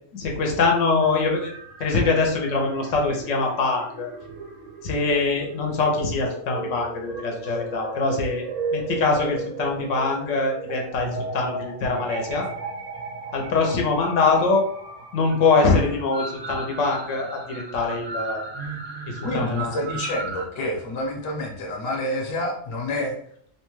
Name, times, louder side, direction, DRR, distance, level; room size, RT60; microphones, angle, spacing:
voice 1, 0.1-1.5 1.8-4.1 4.8-8.4 8.7-12.5 13.3-14.7 15.1-18.5 19.1-19.7, left 3 dB, 85° left, 1 dB, 1.0 m, -23 dB
sound 1, 1.0-20.5, right 3 dB, 60° right, 0.4 m, -35 dB
voice 2, 19.2-23.2, left 1 dB, 55° left, -1 dB, 0.9 m, -28 dB
2.8 x 2.2 x 3.0 m, 0.62 s
omnidirectional pair, 1.3 m